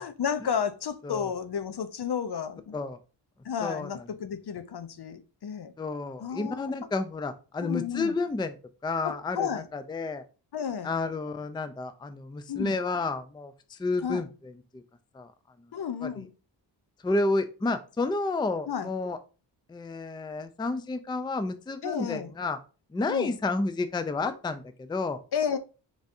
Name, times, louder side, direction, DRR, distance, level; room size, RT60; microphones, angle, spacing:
voice 1, 0.0-2.7 3.4-5.7 6.2-6.7 7.6-8.2 9.0-9.7 10.5-10.9 12.5-12.8 14.0-14.3 15.7-16.3 18.7-18.9 21.8-22.3 23.1-23.4 24.2-24.3 25.3-25.6, left 7 dB, 55° left, 0.7 m, -32 dB
voice 2, 5.8-8.5 8.8-10.2 10.8-14.8 15.1-15.3 16.0-16.2 17.0-19.2 19.7-22.6 22.9-25.2, left 3 dB, 10° left, 0.4 m, -31 dB
4.8 x 4.0 x 2.7 m
cardioid pair, 45°, 47 cm